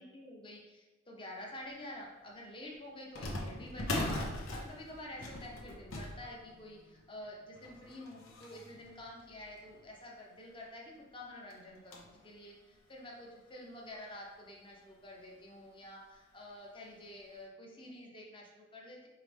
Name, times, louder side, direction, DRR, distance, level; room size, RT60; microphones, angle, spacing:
voice 1, 0.0-19.1, left 1 dB, 25° left, -2 dB, 0.8 m, -49 dB
sound 1, 1.7-1.8 3.1-10.1 10.7-10.8 11.0-11.1 11.5-12.2 12.7-12.8 13.7-13.8 14.1-14.3 15.6-15.9 16.3-16.4 17.0-17.2, left 1 dB, 85° left, 0.8 m, -41 dB
4.8 x 3.1 x 3.3 m, 1.2 s
head